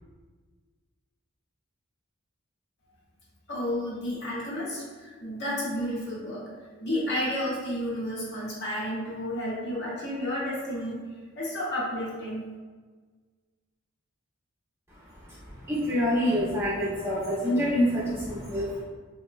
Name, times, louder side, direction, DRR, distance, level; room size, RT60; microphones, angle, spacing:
voice 1, 3.5-6.5 6.8-11.0 11.4-12.4, left 1 dB, 55° left, -6 dB, 0.7 m, -31 dB
voice 2, 14.9-18.8, equal, 10° right, -9 dB, 0.6 m, -27 dB
3.2 x 2.1 x 2.3 m, 1.4 s
head